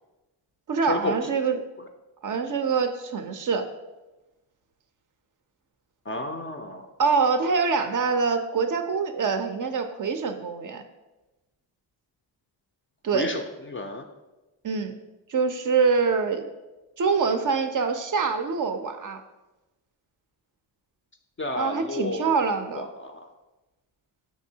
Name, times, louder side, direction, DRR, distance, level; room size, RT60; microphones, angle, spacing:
voice 1, 0.7-1.6 2.2-3.7 7.0-10.8 13.0-13.3 14.6-14.9 15.3-16.5 17.0-19.2 21.5-22.9, right 5 dB, 45° right, 7 dB, 0.4 m, -25 dB
voice 2, 6.1-6.8 13.1-13.4 13.7-14.0 21.4-22.3 22.8-23.3, left 2 dB, 30° left, 4 dB, 0.3 m, -31 dB
5.8 x 2.6 x 2.7 m, 1.1 s
supercardioid pair, 45°, 48 cm